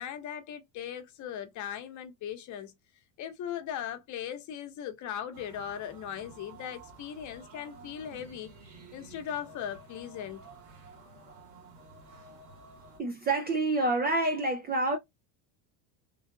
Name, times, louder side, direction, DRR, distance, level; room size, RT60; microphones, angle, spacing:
voice 1, 0.0-2.7 3.2-8.5 8.9-10.4, left 9 dB, 40° left, 0.9 m, -38 dB
sound 1, 5.3-13.0, right 3 dB, 70° right, 2.3 m, -52 dB
voice 2, 13.0-15.0, right 2 dB, 25° right, 0.4 m, -27 dB
3.7 x 2.4 x 2.7 m
cardioid pair, 140°, 44 cm